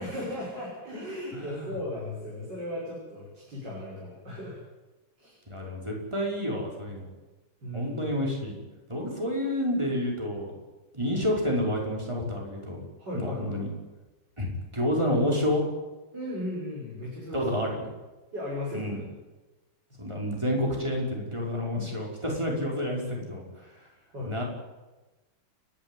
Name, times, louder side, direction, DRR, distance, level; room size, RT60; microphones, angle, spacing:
voice 1, 0.0-4.6 5.2-5.4 7.6-8.1 13.0-13.6 16.1-17.5 18.3-19.1 24.1-24.4, left 1 dB, 55° right, -5 dB, 6.7 m, -36 dB
voice 2, 1.3-1.7 5.5-7.0 7.7-8.5 8.9-10.5 10.9-12.8 13.1-13.7 14.4-15.6 17.3-17.9 18.7-19.0 20.0-23.7 24.2-24.4, left 1 dB, 15° right, -2 dB, 5.5 m, -29 dB
29.5 x 12.0 x 9.4 m, 1.2 s
omnidirectional pair, 2.2 m